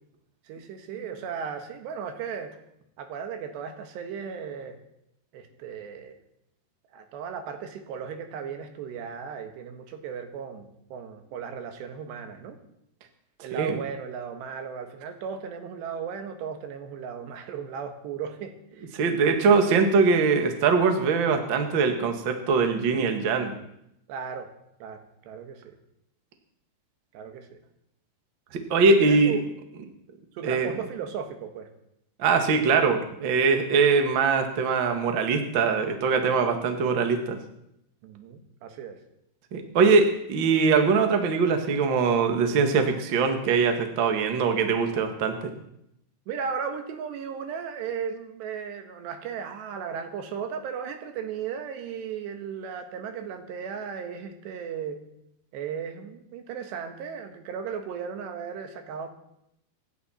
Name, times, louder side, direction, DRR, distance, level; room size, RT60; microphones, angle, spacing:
voice 1, 0.5-2.5 3.0-4.8 5.3-6.2 6.9-12.6 13.4-18.9 19.5-19.9 24.1-24.5 24.8-25.8 27.1-27.6 28.8-29.4 30.4-31.7 38.0-39.0 46.3-55.0 55.5-59.1, right 7 dB, 90° right, 6 dB, 3.7 m, -36 dB
voice 2, 18.9-23.5 28.5-29.4 30.4-30.7 32.2-37.4 39.5-45.5, right 4 dB, 55° right, 5 dB, 1.3 m, -22 dB
25.0 x 11.0 x 4.4 m, 0.78 s
omnidirectional pair, 4.8 m